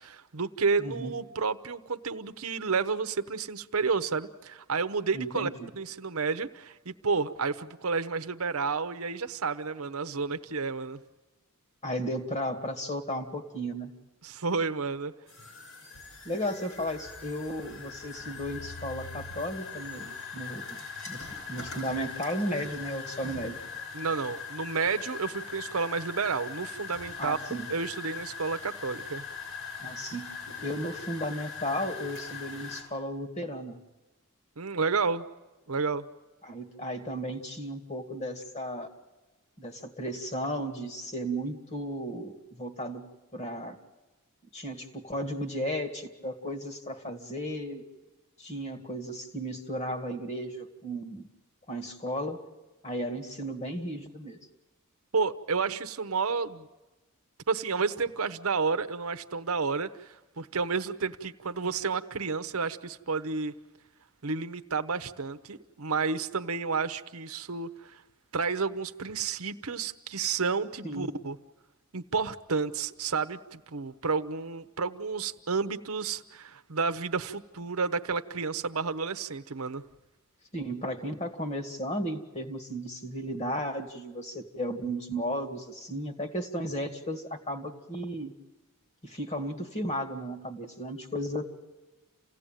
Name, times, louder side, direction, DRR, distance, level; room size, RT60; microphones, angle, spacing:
voice 1, 0.0-11.0 14.2-15.1 23.9-27.4 27.7-29.2 34.6-35.2 35.7-36.1 55.1-56.7 57.5-63.5 64.2-68.0 68.3-71.4 71.9-79.8, right 4 dB, 70° right, 10 dB, 0.9 m, -31 dB
voice 2, 0.8-1.1 5.1-5.7 11.8-14.0 16.2-23.6 27.2-27.7 29.8-30.4 30.6-33.8 36.4-38.9 39.6-43.8 44.5-47.8 48.4-51.3 51.7-52.4 52.8-54.4 70.8-71.1 80.5-88.3 89.0-91.4, equal, 30° left, 7 dB, 2.1 m, -34 dB
sound 1, 15.3-32.8, left 5 dB, 60° left, 7.3 m, -41 dB
28.5 x 16.5 x 9.1 m, 1.2 s
head